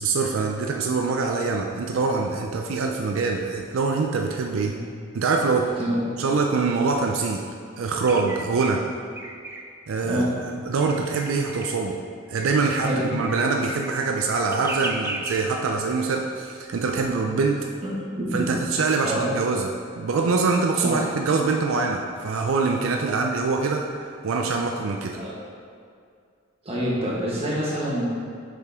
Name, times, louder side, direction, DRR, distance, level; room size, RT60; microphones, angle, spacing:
voice 1, 0.0-4.8 5.1-5.8 6.2-7.4 7.8-8.9 9.9-12.0 12.3-17.7 18.3-25.2, right 4 dB, 80° right, 2 dB, 0.4 m, -24 dB
sound 1, 8.1-8.7 9.2-9.6 10.8-11.7 12.4-13.0 13.2-15.4, right 2 dB, 10° right, 0.4 m, -35 dB
voice 2, 17.8-18.5 19.0-19.3 20.8-21.0 23.1-23.2 25.1-25.3 26.6-28.1, equal, 30° right, -7 dB, 1.5 m, -27 dB
6.6 x 5.1 x 3.6 m, 2.2 s
head